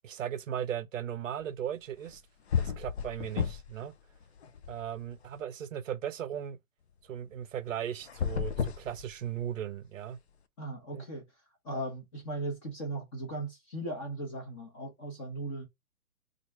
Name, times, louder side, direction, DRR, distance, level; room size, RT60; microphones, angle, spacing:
voice 1, 0.0-2.2 2.6-3.9 4.7-6.6 7.1-10.2 10.9-11.0, right 9 dB, 60° right, 0.6 m, -37 dB
sound 1, 2.1-2.2 2.5-3.8 4.2-5.3 8.0-9.6, left 7 dB, 45° left, 0.5 m, -33 dB
voice 2, 10.6-11.2 11.6-15.7, right 1 dB, 20° left, 1.0 m, -37 dB
3.0 x 2.5 x 4.3 m
hypercardioid pair, 145°, 45 cm